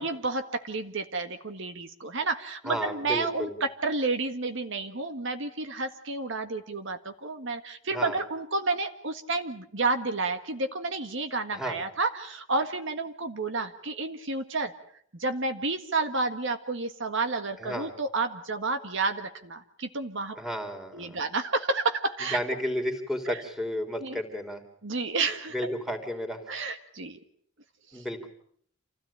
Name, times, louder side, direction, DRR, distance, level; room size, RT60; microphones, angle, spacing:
voice 1, 0.0-14.7 15.1-20.4 20.9-22.4 23.3-23.4 24.0-24.2 24.8-25.7 26.5-27.2 27.9-28.0, right 3 dB, 60° right, 7 dB, 1.7 m, -30 dB
voice 2, 2.7-3.6 7.9-8.2 11.5-11.8 17.6-17.9 20.4-21.2 22.3-24.6 25.5-26.6 27.9-28.3, equal, ahead, 4 dB, 3.5 m, -32 dB
28.0 x 17.0 x 8.7 m, 0.64 s
head